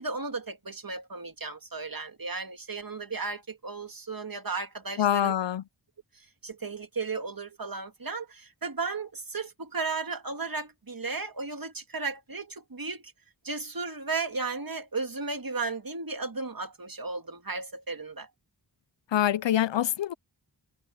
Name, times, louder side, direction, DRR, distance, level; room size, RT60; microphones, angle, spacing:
voice 1, 0.0-5.3 6.4-13.1 13.4-18.3, right 4 dB, 50° right, 2.3 m, -35 dB
voice 2, 5.0-5.6 19.1-20.1, left 11 dB, 80° left, 0.5 m, -25 dB
wide cardioid pair, 65°, 44 cm